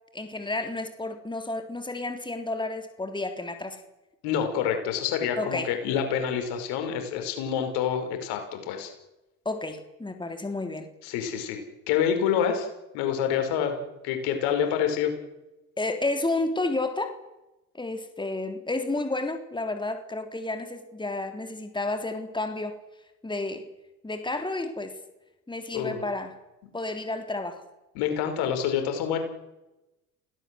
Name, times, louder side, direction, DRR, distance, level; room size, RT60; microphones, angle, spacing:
voice 1, 0.1-3.8 5.4-5.7 9.5-10.9 15.8-17.1 17.7-22.8 23.2-23.7 24.0-24.9 25.5-26.4 26.7-27.6, left 2 dB, 10° left, 6 dB, 3.5 m, -31 dB
voice 2, 4.2-8.9 11.0-12.7 12.9-13.8 14.0-15.1 25.7-26.0 27.9-29.2, left 8 dB, 75° left, 6 dB, 5.7 m, -27 dB
28.0 x 18.0 x 7.9 m, 0.97 s
hypercardioid pair, 70°, 39 cm